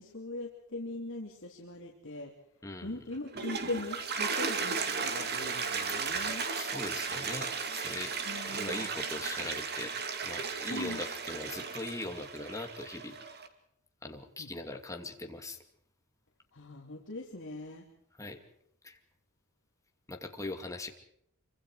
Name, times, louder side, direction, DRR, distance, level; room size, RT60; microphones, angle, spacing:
voice 1, 0.0-2.3 2.8-6.4 8.3-8.9 10.7-11.0 14.4-14.5 16.5-17.8, left 2 dB, 60° left, 0 dB, 3.0 m, -40 dB
voice 2, 2.6-3.0 6.5-8.1 8.4-9.9 10.2-13.1 14.0-15.6 18.2-18.4 18.8-19.0 20.1-20.9, left 2 dB, 15° left, 4 dB, 2.6 m, -41 dB
Toilet flush, 3.1-13.5, right 5 dB, 50° right, 2.5 m, -35 dB
27.0 x 25.0 x 4.9 m, 0.74 s
head